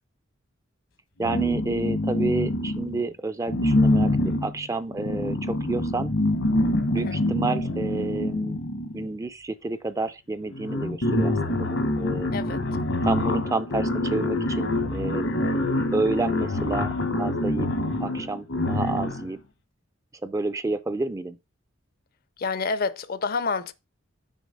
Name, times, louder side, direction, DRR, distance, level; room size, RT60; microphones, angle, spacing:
sound 1, 1.2-3.0 3.5-9.1 10.1-10.2 10.4-19.3, left 1 dB, 75° left, 1.2 m, -26 dB
voice 1, 1.2-6.1 6.9-8.6 8.9-12.3 13.0-15.3 15.9-17.7 18.0-19.4 20.2-21.4, right 3 dB, 15° right, 0.4 m, -30 dB
voice 2, 12.3-12.6 22.4-23.7, left 4 dB, 50° left, 0.5 m, -28 dB
6.3 x 4.1 x 5.2 m
head